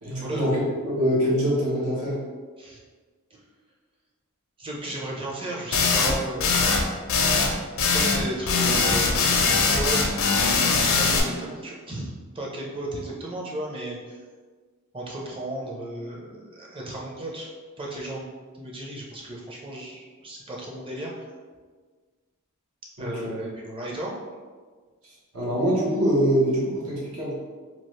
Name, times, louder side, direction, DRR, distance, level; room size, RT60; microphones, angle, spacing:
voice 1, 0.0-2.2 23.0-23.3 25.0-27.3, equal, 75° right, -7 dB, 1.2 m, -24 dB
voice 2, 4.6-6.7 7.9-10.2 10.5-14.2 14.9-17.5 17.8-18.3 18.5-21.3 23.0-24.1, right 1 dB, 25° right, -3 dB, 0.6 m, -34 dB
sound 1, 5.7-6.1 6.4-6.8 7.1-7.5 7.8-8.2 8.5-11.2, left 4 dB, 65° left, 0.5 m, -21 dB
2.9 x 2.4 x 3.2 m, 1.5 s
head